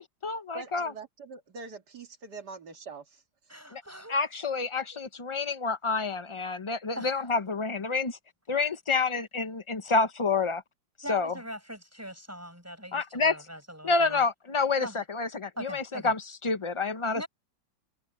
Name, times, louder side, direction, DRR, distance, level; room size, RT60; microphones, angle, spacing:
voice 1, 0.0-0.9 3.7-3.8 4.1-8.2 8.5-10.6 11.1-11.3 12.9-13.4 13.8-17.2, left 4 dB, 25° left, 0.6 m, -28 dB
voice 2, 0.5-3.2, right 4 dB, 60° right, 2.7 m, -43 dB
voice 3, 3.5-4.2 6.9-7.2 11.0-14.2 14.8-15.0 15.6-16.1 17.1-17.3, equal, 10° right, 7.8 m, -41 dB
omnidirectional pair, 2.0 m